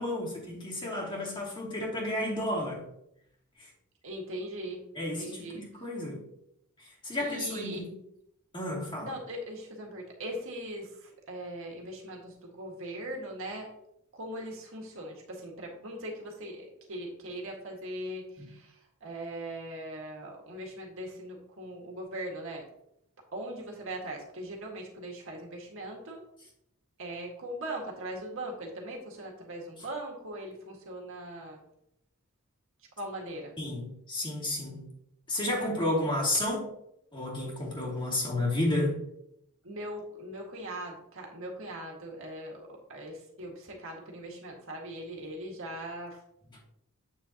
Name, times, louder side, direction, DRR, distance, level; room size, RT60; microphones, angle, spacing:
voice 1, 0.0-2.8 3.6-3.7 5.0-6.3 6.8-7.9 8.5-9.1 18.4-18.5 33.6-34.9 35.3-36.7 37.1-39.0, left 1 dB, 25° left, 2.6 m, -32 dB
voice 2, 4.0-5.6 7.2-7.8 9.0-13.7 14.1-22.7 23.3-26.2 27.0-31.7 33.0-33.5 39.6-46.2, right 1 dB, 65° right, 1.9 m, -40 dB
8.8 x 6.6 x 2.9 m
head